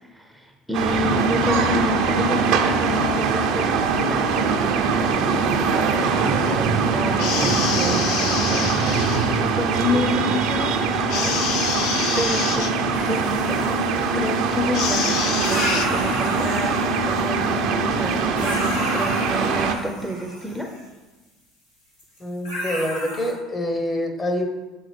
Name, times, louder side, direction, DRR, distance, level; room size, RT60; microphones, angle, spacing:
voice 1, 0.0-11.4 12.2-20.7, left 1 dB, 5° right, 2 dB, 0.6 m, -29 dB
sound 1, 0.7-19.7, right 4 dB, 60° right, 0.6 m, -22 dB
sound 2, 7.2-9.4 11.1-12.7 14.7-15.9, left 8 dB, 60° left, 0.4 m, -27 dB
sound 3, 12.9-14.9 15.4-17.6 18.0-20.8 22.0-22.2 22.4-23.3, equal, 85° left, 1.7 m, -32 dB
voice 2, 22.2-24.5, left 1 dB, 30° left, 4 dB, 1.0 m, -26 dB
7.8 x 3.7 x 3.3 m, 1.2 s
hypercardioid pair, 65°, 0 cm